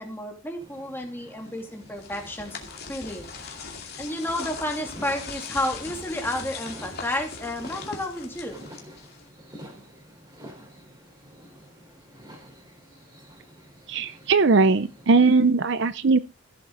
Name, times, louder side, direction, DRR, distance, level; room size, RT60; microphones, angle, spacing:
voice 1, 0.0-2.6 2.9-3.3 4.0-8.6, left 1 dB, 10° left, 2 dB, 2.7 m, -31 dB
sound 1, 0.6-15.5, equal, 20° right, 3.8 m, -49 dB
sound 2, 1.6-9.4, left 5 dB, 50° left, 2.4 m, -40 dB
voice 2, 13.9-16.2, right 4 dB, 60° right, 14 dB, 0.6 m, -19 dB
15.0 x 7.5 x 3.9 m, 0.30 s
head